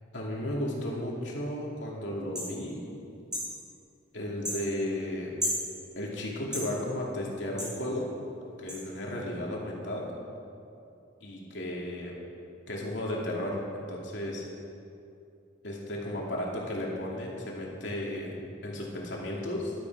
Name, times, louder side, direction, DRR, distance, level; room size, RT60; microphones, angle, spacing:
voice 1, 0.1-2.9 4.1-5.3 6.0-8.1 8.6-10.1 11.2-12.1 12.7-14.4 15.6-18.3 18.6-19.7, left 1 dB, 75° left, -3 dB, 2.6 m, -34 dB
sound 1, 2.3-2.5 3.3-3.5 4.4-4.6 5.4-5.6 6.5-6.7 7.6-7.7 8.7-8.8, equal, 5° right, 4.0 m, -32 dB
15.5 x 12.0 x 4.8 m, 2.6 s
head